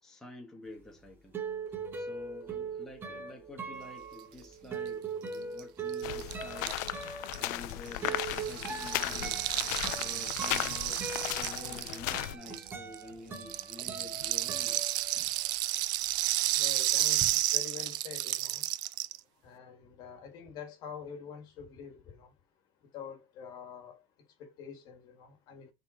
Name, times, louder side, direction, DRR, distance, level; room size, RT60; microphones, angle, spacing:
voice 1, 0.0-1.4 1.9-6.8 7.4-9.4 10.0-11.1 11.4-14.9, left 2 dB, 5° left, 1.3 m, -49 dB
sound 1, 0.8-15.6 15.9-17.3, right 5 dB, 25° right, 1.4 m, -41 dB
Rattle (instrument), 5.3-5.4 5.6-5.7 5.9-13.0 13.3-19.2, right 17 dB, 50° right, 0.4 m, -32 dB
sound 2, 6.0-12.4, left 17 dB, 70° left, 0.5 m, -36 dB
voice 2, 16.6-18.7 19.4-22.3 22.9-24.0 24.4-25.7, left 7 dB, 45° left, 2.0 m, -46 dB
7.0 x 3.9 x 4.4 m
cardioid pair, 155°, 10 cm